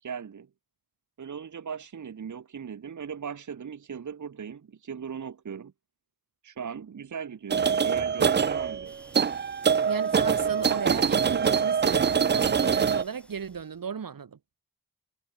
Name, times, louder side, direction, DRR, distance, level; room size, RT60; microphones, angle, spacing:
voice 1, 0.0-0.5 1.2-5.7 6.4-9.0, right 7 dB, 60° right, 0.8 m, -38 dB
sound 1, 7.5-13.0, right 6 dB, 35° right, 0.4 m, -24 dB
sound 2, 8.8-13.9, equal, 5° left, 3.1 m, -55 dB
voice 2, 9.8-14.4, right 6 dB, 80° right, 1.4 m, -35 dB
wide cardioid pair, 60°, 34 cm